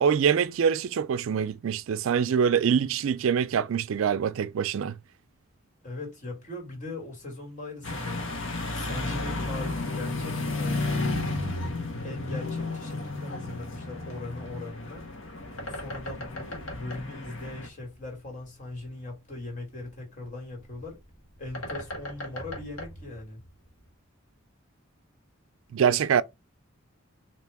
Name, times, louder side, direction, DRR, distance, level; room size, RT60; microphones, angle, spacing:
voice 1, 0.0-5.0 25.7-26.2, right 7 dB, 70° right, 0.4 m, -24 dB
voice 2, 5.8-11.1 12.0-15.1 15.7-21.0 21.4-23.4, left 2 dB, 35° left, 2.4 m, -40 dB
sound 1, 7.8-17.7, left 2 dB, 65° left, 1.3 m, -33 dB
Bird, 14.7-23.9, left 1 dB, 85° left, 1.6 m, -42 dB
4.6 x 3.0 x 3.5 m
head